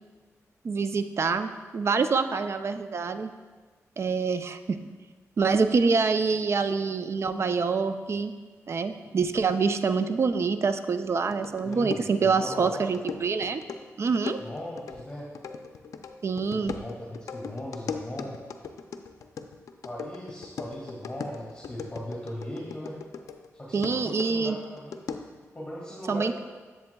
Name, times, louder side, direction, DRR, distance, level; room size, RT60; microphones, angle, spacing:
voice 1, 0.6-3.3 4.0-4.8 5.4-8.3 8.7-13.6 14.0-14.4 16.2-16.7 23.7-24.6 26.1-26.4, right 4 dB, 50° right, 9 dB, 0.4 m, -26 dB
sound 1, 11.3-23.5 23.8-25.4, left 5 dB, 80° left, 0.4 m, -39 dB
voice 2, 11.6-12.9 14.4-15.3 16.5-18.4 19.8-23.0 23.5-25.0 25.5-26.4, left 1 dB, 15° left, -5 dB, 2.0 m, -38 dB
10.5 x 7.5 x 2.3 m, 1.4 s
cardioid pair, 80°, 6 cm